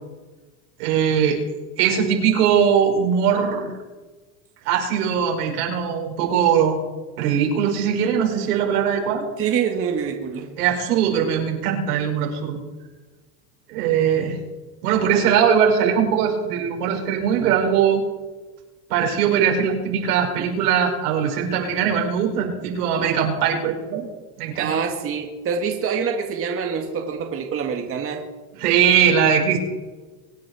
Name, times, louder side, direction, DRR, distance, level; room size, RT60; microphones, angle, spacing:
voice 1, 0.8-1.4 1.8-3.7 4.7-6.8 7.2-9.3 10.6-12.6 13.7-14.4 14.8-18.0 18.9-24.1 24.4-24.7 28.6-29.6, right 8 dB, 85° right, 1 dB, 5.2 m, -20 dB
voice 2, 9.4-10.5 24.6-28.2, right 6 dB, 30° right, 2 dB, 1.9 m, -25 dB
24.0 x 9.9 x 5.0 m, 1.3 s
supercardioid pair, 140°, 45 cm